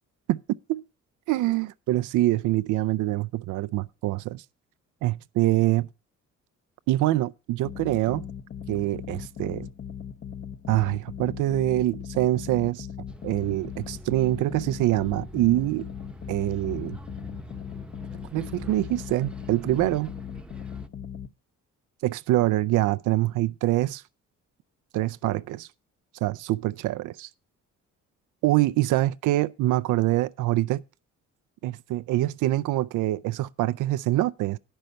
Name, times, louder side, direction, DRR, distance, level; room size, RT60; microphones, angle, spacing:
voice 1, 1.3-4.4 5.0-5.9 6.9-8.3 8.7-9.7 10.7-12.9 13.2-15.9 16.3-17.0 18.3-20.1 22.0-24.0 24.9-25.7 26.2-27.3 28.4-30.8 31.6-34.6, right 16 dB, 85° right, 0.5 m, -25 dB
sound 1, 7.6-21.3, left 8 dB, 40° left, 1.0 m, -39 dB
Bus, 13.1-20.9, equal, 5° right, 0.8 m, -45 dB
10.5 x 5.6 x 6.3 m
cardioid pair, 90°, 30 cm